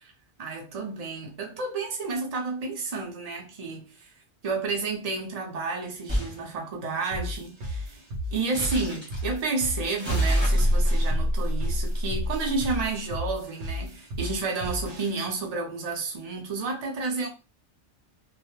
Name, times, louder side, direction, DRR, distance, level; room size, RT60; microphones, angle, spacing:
voice 1, 0.4-4.1 4.4-8.0 8.3-17.3, right 4 dB, 45° right, 0.5 m, -31 dB
sound 1, 6.1-6.4 8.5-9.3 10.0-12.6, equal, 10° right, 0.9 m, -25 dB
sound 2, 7.1-15.1, left 1 dB, 75° right, 0.9 m, -35 dB
2.2 x 2.0 x 2.9 m
omnidirectional pair, 1.2 m